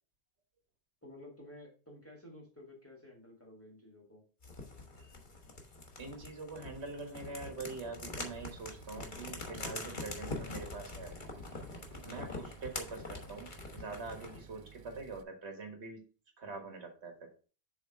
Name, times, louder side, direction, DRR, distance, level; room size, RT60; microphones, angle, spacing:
voice 1, 1.0-4.2 11.9-12.2, left 1 dB, 15° left, -1 dB, 1.9 m, -53 dB
sound 1, 4.4-14.5, left 3 dB, 45° left, 1.4 m, -44 dB
voice 2, 6.0-11.1 12.1-16.0 16.4-17.3, right 3 dB, 90° right, 3 dB, 1.7 m, -44 dB
sound 2, 8.2-15.2, right 8 dB, 60° right, 0.7 m, -55 dB
7.0 x 3.5 x 4.6 m, 0.37 s
omnidirectional pair, 1.1 m